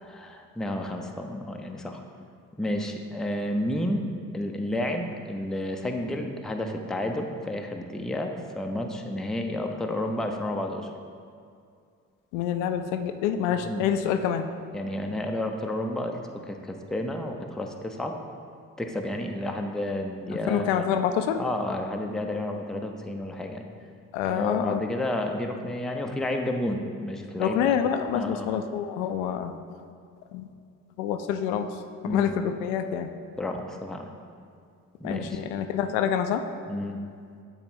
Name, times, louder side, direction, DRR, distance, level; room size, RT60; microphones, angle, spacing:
voice 1, 0.0-2.0 2.6-4.0 4.3-10.9 13.5-13.9 14.7-18.2 18.8-20.8 21.4-23.6 24.2-27.7 28.1-28.5 32.0-32.4 33.4-34.1 35.0-35.4 36.7-37.0, left 1 dB, ahead, 3 dB, 0.5 m, -31 dB
voice 2, 12.3-14.5 20.5-21.4 24.1-24.8 27.4-29.5 30.3-30.5 31.0-31.7 32.1-33.1 35.0-36.4, left 9 dB, 70° left, 7 dB, 0.5 m, -27 dB
9.2 x 4.0 x 3.7 m, 2.3 s
figure-of-eight pair, 40°, 41 cm